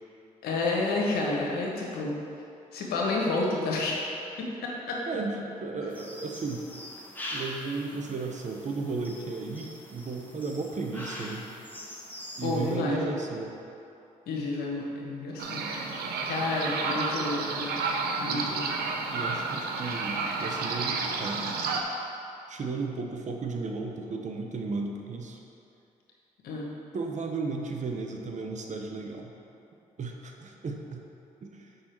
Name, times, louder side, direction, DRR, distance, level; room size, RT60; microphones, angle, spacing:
voice 1, 0.4-2.2 2.7-4.1 4.4-5.0 12.4-13.0 14.3-16.0 16.2-17.9 18.2-18.7 26.4-26.7, left 2 dB, 75° left, -3 dB, 1.3 m, -30 dB
voice 2, 5.1-6.6 7.3-11.5 12.4-13.5 18.3-18.6 19.1-21.6 22.5-25.4 26.9-29.3 30.0-31.0 31.4-31.7, right 3 dB, 50° right, 2 dB, 1.0 m, -34 dB
sound 1, 5.9-12.8, left 1 dB, 10° left, 1.5 m, -43 dB
sound 2, 15.4-21.8, right 4 dB, 75° right, 0.7 m, -31 dB
6.6 x 5.5 x 4.5 m, 2.7 s
supercardioid pair, 50°, 16 cm